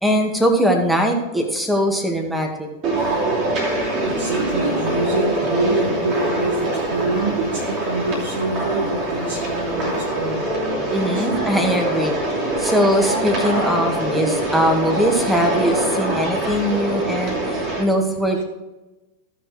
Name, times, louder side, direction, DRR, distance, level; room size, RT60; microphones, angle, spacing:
voice 1, 0.0-2.7 10.9-12.2 12.6-18.4, equal, 5° right, 3 dB, 1.9 m, -21 dB
sound 1, 2.8-17.8, right 2 dB, 35° right, 2.7 m, -24 dB
voice 2, 3.8-10.4 11.1-11.4 12.5-12.7, right 2 dB, 65° right, -2 dB, 1.6 m, -26 dB
16.0 x 6.4 x 3.3 m, 1.1 s
figure-of-eight pair, 90°, 0 cm